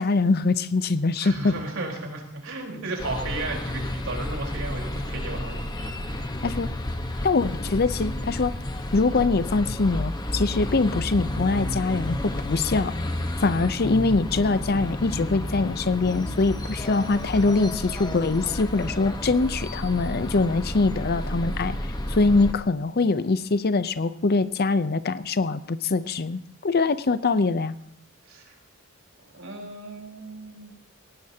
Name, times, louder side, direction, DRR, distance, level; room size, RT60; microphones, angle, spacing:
voice 1, 0.0-1.6 6.4-6.7 7.2-8.5 8.9-12.9 13.4-21.8 22.1-27.7, left 3 dB, 45° left, 14 dB, 0.6 m, -23 dB
voice 2, 1.2-6.0 28.3-28.5 29.3-30.7, right 2 dB, 65° right, 0 dB, 4.2 m, -34 dB
sound 1, 3.0-22.5, left 1 dB, 20° left, 1.1 m, -31 dB
18.0 x 17.5 x 2.8 m, 0.64 s
head